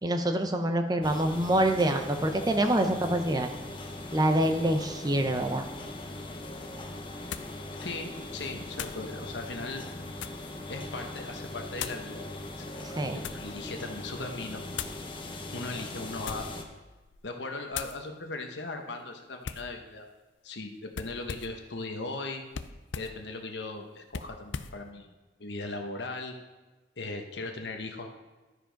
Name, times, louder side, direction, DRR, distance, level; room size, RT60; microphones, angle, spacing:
voice 1, 0.0-3.5 4.1-5.7 13.0-13.2, right 1 dB, 20° right, 6 dB, 0.6 m, -26 dB
sound 1, 1.0-16.6, left 2 dB, 30° left, 0.9 m, -40 dB
sound 2, 7.3-7.6 8.7-9.1 9.8-10.5 11.7-12.1 12.8-13.5 14.7-15.0 16.1-16.6 17.0-17.3 17.7-18.0 19.4-19.7 20.9-21.6 22.5-23.2 24.1-24.8, left 7 dB, 90° left, 0.5 m, -39 dB
voice 2, 7.8-9.8 10.7-14.6 15.5-16.5 17.2-20.1 20.4-22.4 22.9-25.1 25.4-26.3 27.0-28.2, left 3 dB, 70° left, 4 dB, 1.1 m, -38 dB
12.5 x 4.9 x 5.2 m, 1.2 s
head